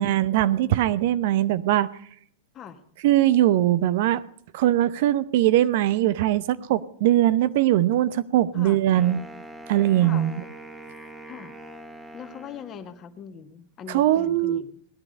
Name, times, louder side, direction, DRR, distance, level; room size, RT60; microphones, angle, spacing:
voice 1, 0.0-1.9 3.0-4.2 4.5-9.2 9.7-10.3 13.9-14.6, right 13 dB, 60° right, 16 dB, 0.7 m, -21 dB
Wind instrument woodwind instrument, 8.9-13.2, right 1 dB, 10° right, 1.7 m, -43 dB
voice 2, 10.0-10.4 11.3-11.5 12.1-14.8, left 8 dB, 30° left, 7 dB, 1.6 m, -41 dB
18.0 x 10.5 x 5.3 m, 0.63 s
hypercardioid pair, 110°, 0 cm